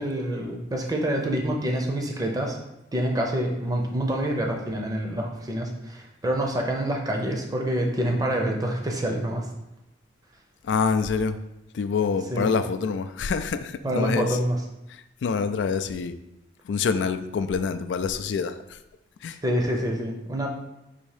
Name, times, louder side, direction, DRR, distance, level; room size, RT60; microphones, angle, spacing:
voice 1, 0.0-2.6 2.9-9.5 12.3-12.5 13.8-14.6 19.4-20.5, right 1 dB, 20° right, 1 dB, 0.6 m, -26 dB
voice 2, 10.6-11.4 11.7-14.4 14.9-16.2 16.6-18.8 19.2-19.4, left 5 dB, 90° left, 10 dB, 0.3 m, -26 dB
4.1 x 2.7 x 4.8 m, 0.91 s
head